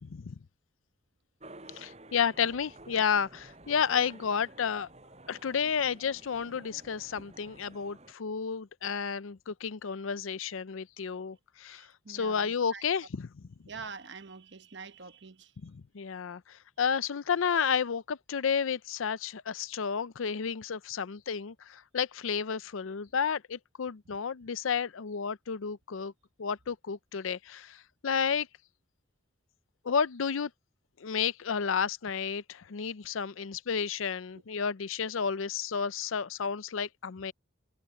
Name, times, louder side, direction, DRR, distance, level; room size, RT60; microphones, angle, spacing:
voice 1, 0.0-0.3 1.7-4.9 5.3-13.4 15.6-26.1 26.4-28.5 29.8-30.5 31.0-37.3, left 6 dB, 85° left, 0.5 m, -31 dB
sound 1, 1.4-8.1, right 2 dB, 35° right, 6.9 m, -52 dB
voice 2, 11.7-12.8 13.7-15.5 34.3-34.4, right 4 dB, 60° right, 1.1 m, -46 dB
head